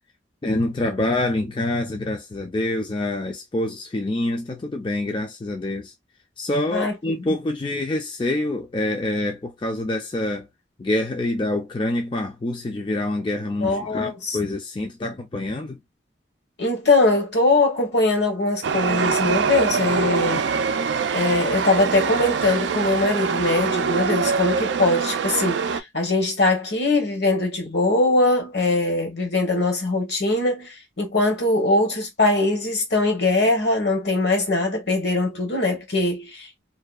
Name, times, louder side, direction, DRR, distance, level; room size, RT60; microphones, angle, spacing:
voice 1, 0.4-5.9 6.4-10.5 10.8-15.8, left 1 dB, 25° left, 0.4 m, -26 dB
voice 2, 6.7-7.2 13.6-14.4 16.6-20.5 21.1-36.6, left 2 dB, 65° left, 1.1 m, -22 dB
Chatter / Subway metro underground, 18.6-25.8, right 5 dB, 75° right, 0.4 m, -24 dB
2.7 x 2.3 x 2.3 m
head